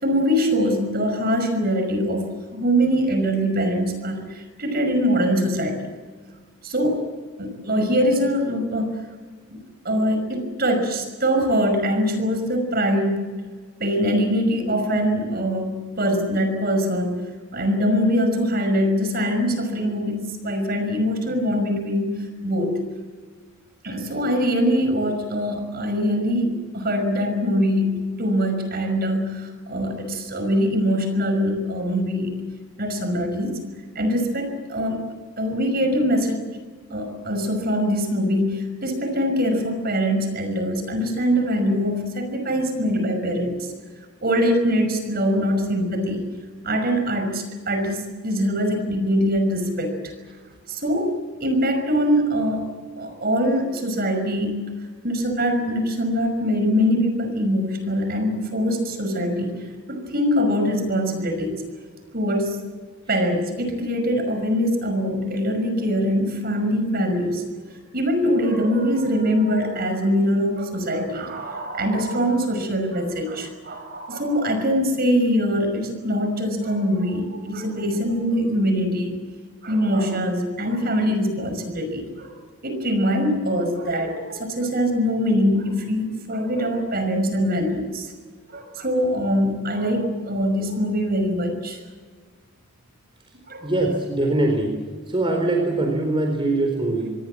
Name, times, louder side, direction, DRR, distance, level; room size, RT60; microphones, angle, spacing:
voice 1, 0.0-5.8 6.6-7.1 7.4-9.0 9.5-13.3 13.8-17.2 17.5-22.8 23.8-32.4 32.8-33.6 33.9-35.0 35.4-36.4 36.9-43.6 44.2-46.3 46.6-50.1 50.7-51.1 51.4-52.7 53.0-54.7 55.0-61.6 62.1-62.6 63.1-67.4 67.7-79.2 79.6-82.3 82.6-88.1 88.5-91.8 93.5-93.7, equal, 45° right, 6 dB, 5.8 m, -23 dB
voice 2, 93.6-94.8 95.1-97.1, right 2 dB, 25° right, 2 dB, 4.1 m, -22 dB
27.0 x 21.0 x 7.6 m, 1.5 s
head